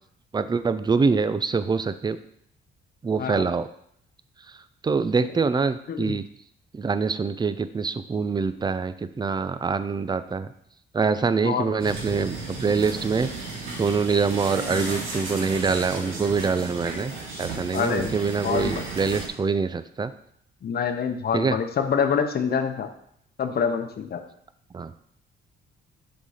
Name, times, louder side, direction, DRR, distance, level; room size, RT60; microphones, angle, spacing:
voice 1, 0.3-2.2 3.0-3.7 4.8-6.2 6.7-10.5 10.9-13.3 13.8-17.1 17.4-20.1 21.3-21.6 24.7-24.9, right 5 dB, 20° right, 12 dB, 0.5 m, -25 dB
voice 2, 11.4-11.8 17.7-18.1 18.4-18.9 20.6-22.9 23.4-24.2, left 6 dB, 50° left, 6 dB, 0.9 m, -26 dB
sound 1, 11.8-19.3, right 3 dB, 80° right, 2.0 m, -34 dB
6.9 x 3.9 x 5.0 m, 0.69 s
cardioid pair, 90°, 20 cm